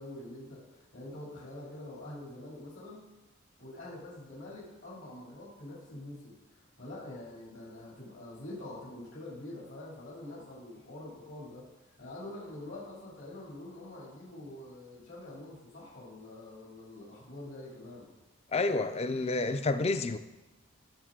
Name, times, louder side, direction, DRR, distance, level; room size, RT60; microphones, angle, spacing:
voice 1, 0.0-3.0 3.6-18.1, left 1 dB, 65° left, -5 dB, 2.7 m, -45 dB
voice 2, 18.5-20.2, left 3 dB, 30° left, 11 dB, 0.4 m, -29 dB
14.0 x 6.4 x 3.7 m, 1.0 s
head